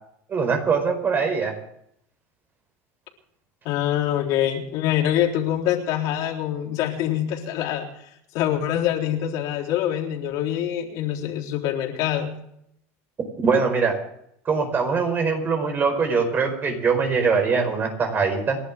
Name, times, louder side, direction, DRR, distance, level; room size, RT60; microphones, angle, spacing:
voice 1, 0.3-1.5 13.4-13.9 14.4-18.6, right 5 dB, 30° right, 5 dB, 5.0 m, -22 dB
voice 2, 3.6-7.9 8.3-12.4, left 11 dB, 60° left, 1 dB, 3.9 m, -25 dB
29.5 x 11.5 x 3.7 m, 0.73 s
supercardioid pair, 135°, 7 cm